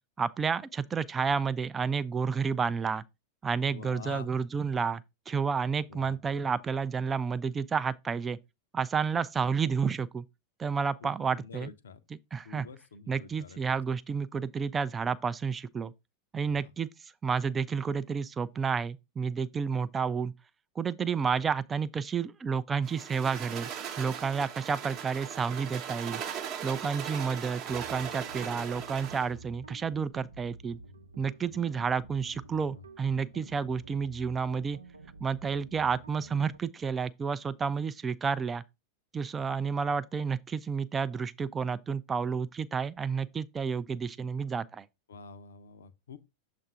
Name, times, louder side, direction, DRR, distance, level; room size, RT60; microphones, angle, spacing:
voice 1, 0.2-3.0 3.4-8.4 8.7-10.2 10.6-11.7 12.3-12.7 13.1-15.9 16.3-16.9 17.2-20.3 20.8-23.7 24.0-26.2 26.6-30.8 31.2-34.8 35.2-38.6 39.1-44.8, right 6 dB, 20° right, 0.4 m, -30 dB
voice 2, 3.7-4.3 5.9-6.5 11.0-12.0 12.4-13.8 16.4-16.7 32.7-32.8 45.1-46.2, left 5 dB, 65° left, 0.6 m, -47 dB
sound 1, 22.8-29.3, right 8 dB, 40° right, 0.9 m, -39 dB
sound 2, 27.7-36.6, right 3 dB, 75° right, 0.6 m, -50 dB
7.2 x 2.5 x 5.6 m
figure-of-eight pair, 90°, 0 cm